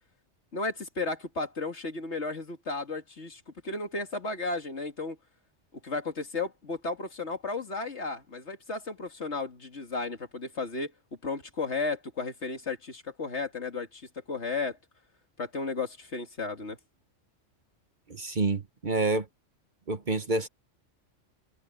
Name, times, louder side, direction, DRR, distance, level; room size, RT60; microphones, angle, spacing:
voice 1, 0.5-5.2 5.7-10.9 11.2-14.8 15.4-16.8, left 3 dB, 60° left, 2.6 m, -34 dB
voice 2, 18.1-19.3 19.9-20.5, right 3 dB, 40° right, 1.1 m, -28 dB
omnidirectional pair, 1.3 m